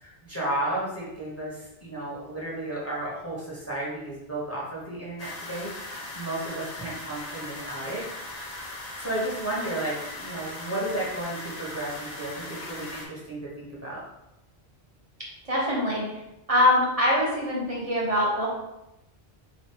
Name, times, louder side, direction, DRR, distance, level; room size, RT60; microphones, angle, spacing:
voice 1, 0.0-8.5 8.9-14.0, right 1 dB, 15° left, -6 dB, 1.0 m, -33 dB
sound 1, 5.2-13.0, left 2 dB, 40° left, 0.7 m, -39 dB
voice 2, 15.4-16.2 16.5-18.5, left 1 dB, 35° right, -5 dB, 1.2 m, -23 dB
4.1 x 3.2 x 3.0 m, 0.88 s
omnidirectional pair, 1.1 m